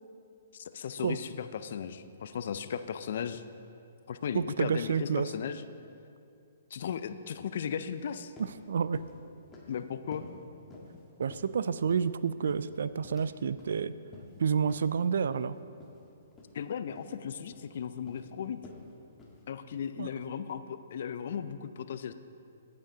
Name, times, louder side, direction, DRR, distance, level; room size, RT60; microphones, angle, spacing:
voice 1, 0.5-3.4 4.1-5.6 6.7-8.3 9.7-10.3 16.5-18.6 19.5-22.1, left 8 dB, 60° left, 11 dB, 0.5 m, -36 dB
voice 2, 4.3-5.3 8.7-9.0 11.2-14.0 14.4-15.5 20.0-20.1, right 6 dB, 70° right, 15 dB, 0.3 m, -29 dB
sound 1, 8.0-8.1 8.4-8.6 8.9-9.2 9.5-9.8 10.1-10.4 10.7-11.0 11.3-12.1 12.5-13.3 13.6-13.8 14.1-14.4 14.7-14.9 15.2-15.4 15.8-16.0 16.3-16.5 17.0-17.2 17.5-17.7 18.1-18.3 18.6-18.9 19.2-19.4, left 3 dB, 15° left, 1.7 m, -50 dB
16.5 x 5.7 x 3.9 m, 2.6 s
hypercardioid pair, 130°, 0 cm